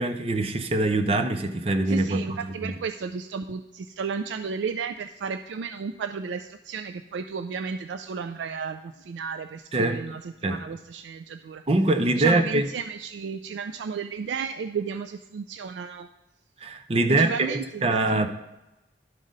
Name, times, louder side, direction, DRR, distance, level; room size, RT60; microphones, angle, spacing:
voice 1, 0.0-2.8 9.7-10.0 10.4-10.6 11.7-12.7 16.6-17.3 17.8-18.3, right 2 dB, 35° right, 7 dB, 0.6 m, -23 dB
voice 2, 1.9-11.6 12.2-16.1 17.1-18.3, right 5 dB, 80° right, 8 dB, 0.3 m, -33 dB
11.5 x 4.0 x 5.1 m, 0.99 s
head